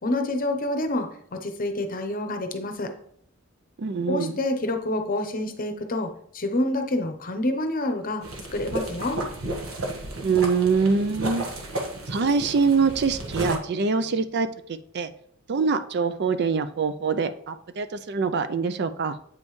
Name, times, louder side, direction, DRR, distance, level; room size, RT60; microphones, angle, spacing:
voice 1, 0.0-2.9 4.1-8.3 8.5-9.2, left 1 dB, 40° left, 6 dB, 0.8 m, -27 dB
voice 2, 3.8-4.4 10.2-11.4 12.1-14.5 14.9-15.1 15.5-19.2, right 5 dB, 55° right, 11 dB, 0.4 m, -24 dB
sound 1, 8.2-13.6, right 1 dB, 85° right, 1.3 m, -32 dB
8.2 x 5.3 x 3.2 m, 0.65 s
head